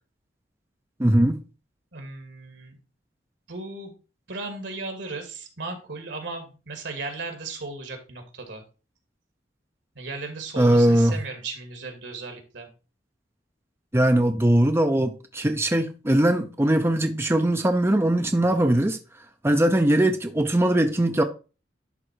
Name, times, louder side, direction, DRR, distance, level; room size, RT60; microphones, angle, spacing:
voice 1, 1.0-1.4 10.6-11.1 13.9-19.0 19.4-21.2, right 1 dB, 15° right, 0.6 m, -20 dB
voice 2, 1.9-2.8 3.5-3.9 4.3-8.6 10.0-12.7, right 3 dB, 80° right, 2.4 m, -36 dB
11.0 x 3.8 x 4.5 m
head